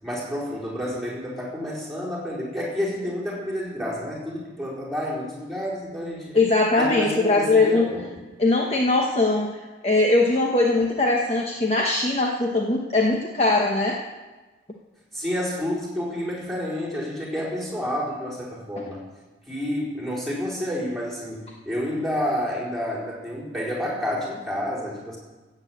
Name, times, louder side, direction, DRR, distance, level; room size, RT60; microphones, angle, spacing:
voice 1, 0.0-6.4 6.8-8.0 15.1-19.0 19.5-25.2, left 1 dB, ahead, -7 dB, 4.3 m, -29 dB
voice 2, 6.3-7.9 8.4-14.0, left 2 dB, 35° left, 0 dB, 1.1 m, -21 dB
14.5 x 8.6 x 7.7 m, 1.2 s
head